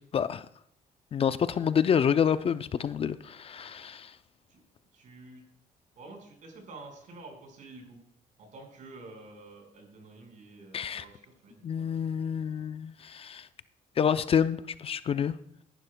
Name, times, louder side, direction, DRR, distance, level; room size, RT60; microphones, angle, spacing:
voice 1, 0.1-0.5 1.1-4.1 10.7-11.0 11.6-13.5 14.0-15.3, left 8 dB, 40° left, 13 dB, 0.5 m, -28 dB
voice 2, 4.9-5.4 6.0-8.0 8.4-12.1, right 2 dB, 65° right, 2 dB, 4.9 m, -49 dB
17.5 x 11.5 x 2.2 m, 0.68 s
cardioid pair, 115°, 14 cm